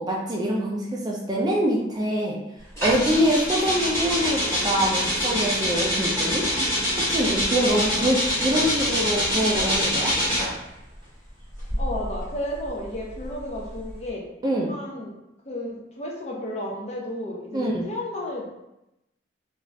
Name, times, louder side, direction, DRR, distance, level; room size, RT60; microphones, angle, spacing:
voice 1, 0.0-2.4 2.8-6.4 7.1-10.1 14.4-14.7 17.5-17.9, equal, 20° right, -2 dB, 0.3 m, -24 dB
sound 1, 2.8-10.6 11.5-14.0, equal, 15° left, 1.2 m, -25 dB
voice 2, 7.6-8.2 11.8-14.3 14.7-15.1 15.5-18.5, left 1 dB, 35° left, -1 dB, 0.5 m, -33 dB
2.5 x 2.4 x 3.1 m, 0.89 s
head